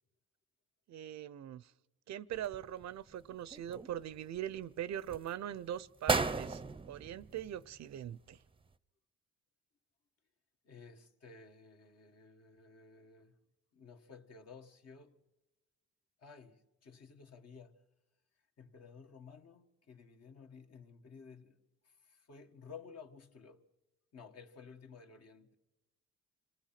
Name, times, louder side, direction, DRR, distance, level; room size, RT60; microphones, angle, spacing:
voice 1, 0.9-1.7 2.1-8.4, right 11 dB, 65° right, 0.7 m, -42 dB
sound 1, 2.3-3.1 3.5-4.4 4.9-5.3 5.7-5.8 6.1-8.0 8.3-8.4, right 4 dB, 15° right, 0.7 m, -35 dB
voice 2, 10.6-13.3 13.7-15.2 16.2-17.8 18.6-23.6 24.1-25.5, left 5 dB, 55° left, 1.7 m, -55 dB
27.0 x 18.5 x 5.9 m
cardioid pair, 90°, 30 cm